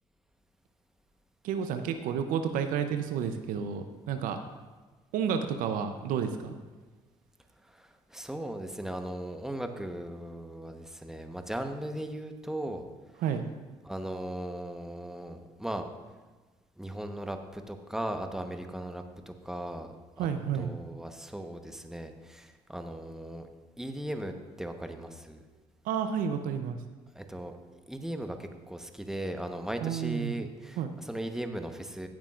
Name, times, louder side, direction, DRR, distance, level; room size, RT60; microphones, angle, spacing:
voice 1, 1.4-4.4 5.1-6.6 13.2-13.4 20.2-20.7 25.8-26.8 29.8-30.4 30.8-30.9, right 7 dB, 75° right, 8 dB, 0.7 m, -31 dB
voice 2, 7.7-12.8 13.8-15.9 16.8-19.9 20.2-20.3 20.6-23.5 23.8-25.4 27.1-27.6 27.9-30.8 31.1-32.1, right 1 dB, 5° right, 6 dB, 1.1 m, -37 dB
15.5 x 8.8 x 2.5 m, 1.3 s
hypercardioid pair, 55°, 14 cm